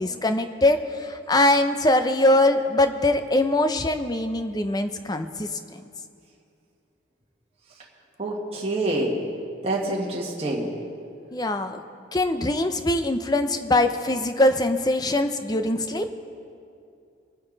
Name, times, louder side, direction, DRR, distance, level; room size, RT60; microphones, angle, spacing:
voice 1, 0.0-5.8 11.3-11.8 12.1-16.1, left 1 dB, 20° left, 8 dB, 0.6 m, -22 dB
voice 2, 8.2-9.2 9.6-10.7, right 1 dB, 30° right, -4 dB, 1.7 m, -26 dB
23.0 x 9.4 x 4.0 m, 2.5 s
head